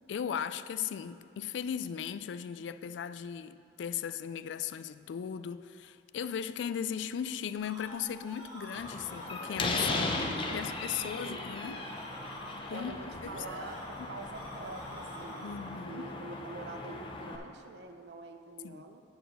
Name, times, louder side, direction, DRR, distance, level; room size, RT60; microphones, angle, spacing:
voice 1, 0.1-10.2 10.5-11.8 12.7-13.3 14.0-14.1 15.4-16.1 18.6-18.8, left 8 dB, 80° left, 12 dB, 0.3 m, -37 dB
sound 1, 7.3-15.8, equal, 30° right, 1.8 m, -48 dB
Slam, 8.8-17.4, left 3 dB, 30° left, 0.6 m, -37 dB
voice 2, 9.9-10.7 11.0-11.9 12.5-19.0, right 3 dB, 65° right, 6 dB, 0.6 m, -45 dB
9.3 x 4.5 x 6.6 m, 2.4 s
head